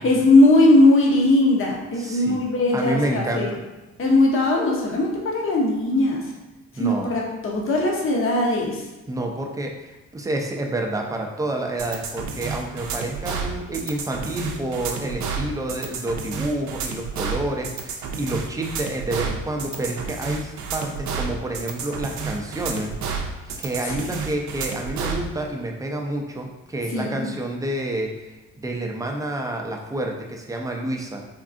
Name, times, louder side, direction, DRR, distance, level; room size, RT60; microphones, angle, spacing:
voice 1, 0.0-3.5 4.0-6.2 6.8-8.8 26.9-27.3, left 2 dB, 45° left, -2 dB, 0.7 m, -19 dB
voice 2, 1.9-2.4 2.7-3.5 6.7-7.1 9.1-23.2 23.6-31.3, right 1 dB, 10° right, 1 dB, 0.4 m, -29 dB
sound 1, 11.8-25.2, right 5 dB, 65° right, 0.5 m, -30 dB
3.6 x 2.3 x 2.5 m, 1.1 s
cardioid pair, 90°, 30 cm